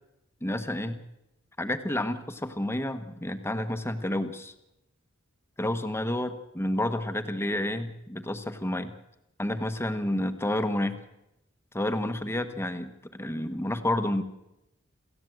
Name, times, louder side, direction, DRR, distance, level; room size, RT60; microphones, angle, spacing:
voice 1, 0.4-1.0 1.6-4.5 5.6-8.9 9.4-11.0 11.7-14.2, left 1 dB, 10° left, 9 dB, 1.3 m, -30 dB
28.0 x 14.5 x 7.9 m, 0.90 s
head